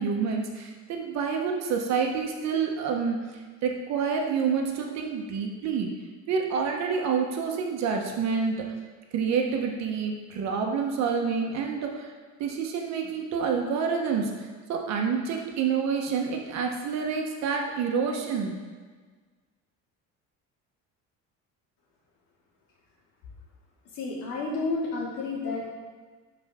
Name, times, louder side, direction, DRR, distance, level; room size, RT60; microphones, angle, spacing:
voice 1, 0.0-3.2 3.6-5.9 6.3-8.6 9.1-12.1 12.4-14.3 14.7-18.6, right 6 dB, 55° right, 1 dB, 1.2 m, -28 dB
voice 2, 23.9-25.7, left 3 dB, 75° left, -4 dB, 2.4 m, -31 dB
11.5 x 4.8 x 3.7 m, 1.4 s
cardioid pair, 165°, 32 cm